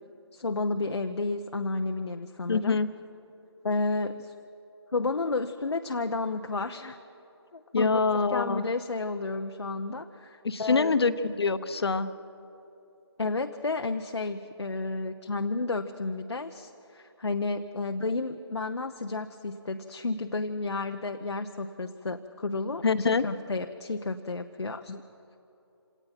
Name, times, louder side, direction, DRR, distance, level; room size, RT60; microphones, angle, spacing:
voice 1, 0.3-2.8 3.6-4.3 4.9-7.0 7.5-11.2 13.2-24.9, left 3 dB, 85° left, 5 dB, 0.9 m, -32 dB
voice 2, 2.5-2.9 7.7-8.6 10.4-12.1 22.8-23.2 24.9-25.0, left 4 dB, 65° left, 11 dB, 1.1 m, -25 dB
26.5 x 18.5 x 5.9 m, 2.9 s
figure-of-eight pair, 155°, 14 cm